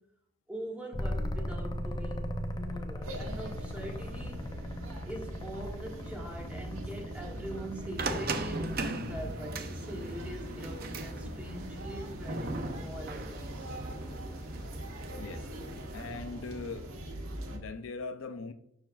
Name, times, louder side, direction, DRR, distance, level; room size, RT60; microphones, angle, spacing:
voice 1, 0.5-4.7 5.0-13.8, right 1 dB, 5° right, -2 dB, 1.6 m, -43 dB
sound 1, 0.9-9.5 11.7-16.3, equal, 20° left, 0.6 m, -40 dB
sound 2, 3.0-17.6, right 1 dB, 90° right, 1.5 m, -41 dB
sound 3, 8.0-16.1, right 2 dB, 45° right, 0.7 m, -39 dB
voice 2, 15.9-16.9 17.5-18.5, left 4 dB, 70° left, 9 dB, 0.5 m, -40 dB
11.5 x 4.6 x 2.4 m, 0.73 s
head